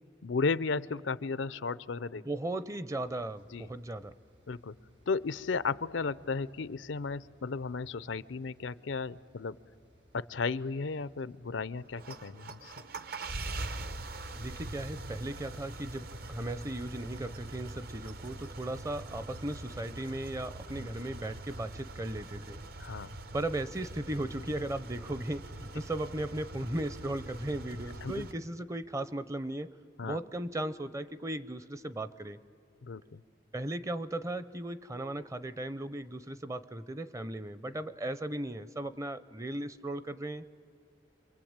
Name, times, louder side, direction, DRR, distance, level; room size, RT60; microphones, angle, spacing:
voice 1, 0.2-2.2 3.5-3.7 4.5-4.7 5.1-9.5 10.1-12.7 20.8-20.9 22.8-23.2 28.0-28.3 30.0-30.2 32.8-33.2, left 4 dB, 90° left, 17 dB, 0.6 m, -34 dB
voice 2, 2.2-4.1 14.3-22.6 23.3-29.7 30.0-32.4 33.5-40.5, right 1 dB, 15° right, 14 dB, 0.6 m, -37 dB
sound 1, 3.0-20.5, equal, 85° right, 4.7 m, -63 dB
sound 2, 11.9-28.3, right 2 dB, 55° right, 0.8 m, -43 dB
27.0 x 23.0 x 8.8 m, 2.4 s
head